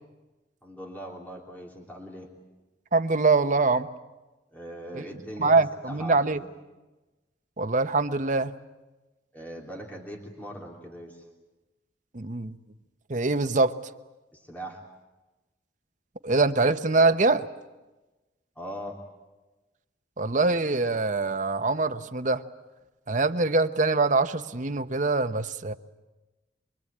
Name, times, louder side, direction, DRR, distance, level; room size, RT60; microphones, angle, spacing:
voice 1, 0.6-2.3 4.5-6.5 9.3-11.2 14.3-14.8 18.5-19.0, equal, 10° left, 3.1 m, -40 dB
voice 2, 2.9-3.9 4.9-5.0 5.4-6.4 7.6-8.5 12.1-12.6 13.1-13.8 16.2-17.4 20.2-22.4 23.1-25.7, right 3 dB, 45° right, 0.9 m, -24 dB
25.0 x 24.0 x 8.6 m
head